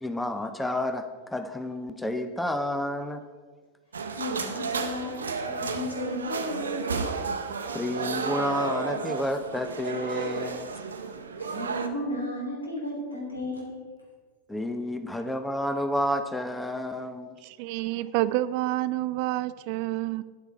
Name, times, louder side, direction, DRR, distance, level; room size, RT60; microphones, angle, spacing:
voice 1, 0.0-3.2 7.7-10.7 14.5-17.4, left 1 dB, 5° left, 8 dB, 0.6 m, -30 dB
sound 1, 3.9-11.9, right 4 dB, 70° right, 0.7 m, -32 dB
voice 2, 4.1-7.1 11.4-13.8, left 1 dB, 80° left, -2 dB, 2.9 m, -34 dB
voice 3, 17.4-20.2, right 16 dB, 45° right, 17 dB, 0.3 m, -28 dB
9.2 x 8.1 x 4.4 m, 1.5 s
figure-of-eight pair, 90°, 0 cm